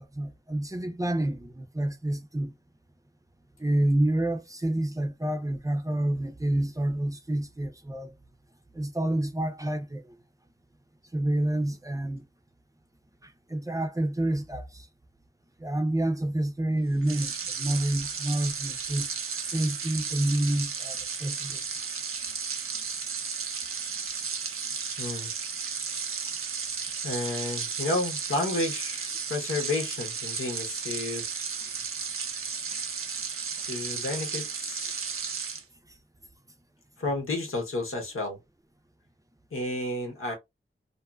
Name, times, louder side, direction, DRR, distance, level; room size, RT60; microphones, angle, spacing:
voice 1, 0.0-2.5 3.6-8.1 8.8-10.0 11.1-12.2 13.5-14.8 15.6-19.1 19.4-21.6, right 1 dB, 15° right, 0.5 m, -28 dB
sound 1, 17.0-35.6, right 5 dB, 90° right, 0.5 m, -34 dB
voice 2, 25.0-25.3 27.0-31.3 33.7-35.1 37.0-38.4 39.5-40.3, left 2 dB, 85° left, 1.0 m, -31 dB
2.6 x 2.4 x 2.2 m
cardioid pair, 50°, 21 cm